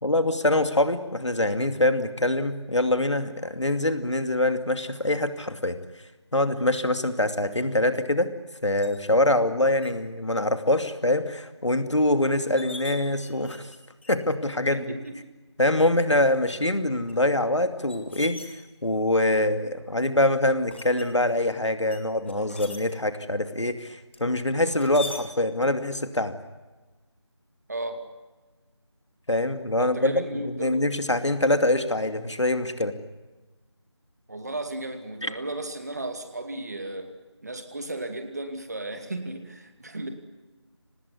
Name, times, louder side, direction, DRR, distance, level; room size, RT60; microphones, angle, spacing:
voice 1, 0.0-5.8 6.3-8.3 8.6-13.7 14.1-14.9 15.6-18.4 18.8-26.3 29.3-32.9 35.2-35.3, left 1 dB, 75° left, 8 dB, 2.6 m, -24 dB
sound 1, 8.8-9.0 9.8-9.9 10.4-10.8 11.2-11.3 12.1-12.2 12.4-13.8 14.0-14.4 15.0-15.1 16.0-16.4 17.1-19.1 19.7-20.1 20.7-21.4 21.9-22.8 24.1-25.2, left 2 dB, 25° left, 2.3 m, -42 dB
voice 2, 14.7-15.3 27.7-28.0 29.8-30.7 34.3-37.1 37.4-40.1, right 2 dB, 35° right, 7 dB, 2.5 m, -34 dB
25.5 x 19.5 x 9.8 m, 1.2 s
figure-of-eight pair, 170°, 15 cm